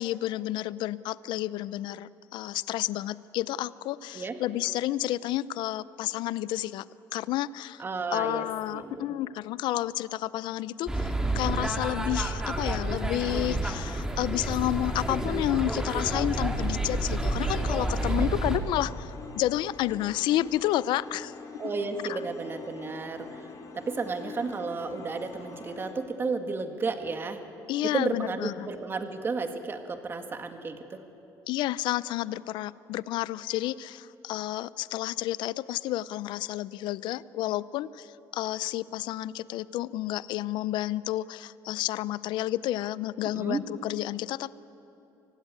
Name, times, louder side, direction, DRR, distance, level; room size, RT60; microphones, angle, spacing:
voice 1, 0.0-6.8 7.1-7.8 8.1-21.3 22.1-22.2 27.7-28.7 31.5-44.5, left 14 dB, 75° left, 18 dB, 0.5 m, -30 dB
voice 2, 7.8-8.5 8.7-9.0 18.0-18.3 21.6-27.4 27.9-31.0 43.3-43.6, right 4 dB, 30° right, 7 dB, 1.8 m, -33 dB
sound 1, 10.9-18.6, right 1 dB, 10° right, 2.0 m, -29 dB
sound 2, 14.6-25.9, left 4 dB, 45° left, 2.5 m, -45 dB
24.5 x 16.5 x 9.7 m, 3.0 s
cardioid pair, 125°, 8 cm